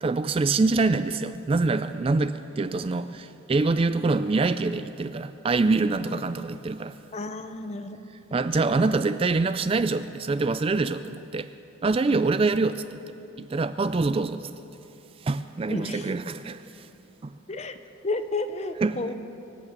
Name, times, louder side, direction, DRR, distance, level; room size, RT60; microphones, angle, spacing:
voice 1, 0.0-7.0 8.3-11.5 11.8-14.5 15.2-16.9 17.2-17.3 18.8-19.1, right 3 dB, 25° right, 0.3 m, -25 dB
voice 2, 7.1-8.0 15.7-16.1 17.5-17.8 18.0-19.1, left 2 dB, 30° left, 0.7 m, -31 dB
25.0 x 8.6 x 6.7 m
head